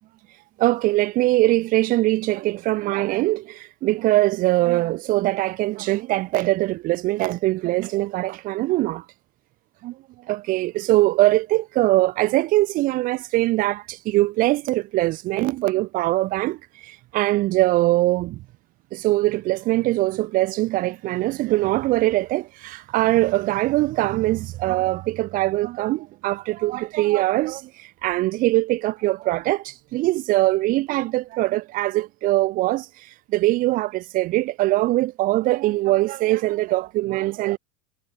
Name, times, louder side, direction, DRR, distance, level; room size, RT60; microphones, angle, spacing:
voice 1, 0.6-9.0 9.8-10.0 10.3-16.6 16.8-18.4 18.9-37.6, right 18 dB, 45° right, 2.6 m, -22 dB
supercardioid pair, 140°, 19 cm